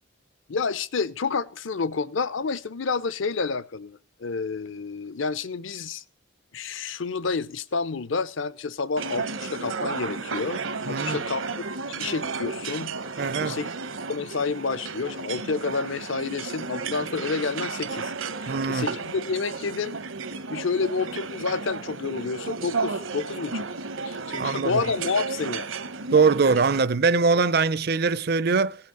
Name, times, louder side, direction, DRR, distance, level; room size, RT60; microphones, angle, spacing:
voice 1, 0.5-6.0 6.5-13.0 13.4-13.7 14.1-18.1 18.4-20.0 20.5-23.7 24.0-25.7 27.3-27.4, left 4 dB, 70° left, 0.6 m, -29 dB
sound 1, 9.0-26.8, right 4 dB, 75° right, 1.0 m, -33 dB
voice 2, 10.8-11.2 13.2-13.6 18.5-18.9 24.4-24.8 26.1-28.8, right 4 dB, 50° right, 0.5 m, -22 dB
17.0 x 5.8 x 7.6 m
head